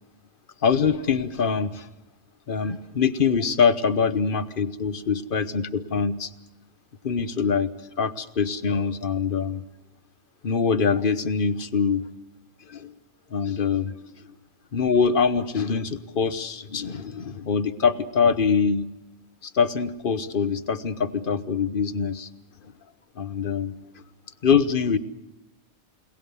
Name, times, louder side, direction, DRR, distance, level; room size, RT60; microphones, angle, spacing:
voice 1, 0.6-1.9 2.5-6.3 7.0-7.7 8.0-9.6 10.4-12.0 12.7-12.9 13.3-13.9 14.7-18.9 19.4-22.3 23.2-23.7 24.4-25.0, left 6 dB, 40° left, 12 dB, 1.1 m, -24 dB
30.0 x 18.5 x 7.0 m, 0.93 s
omnidirectional pair, 1.5 m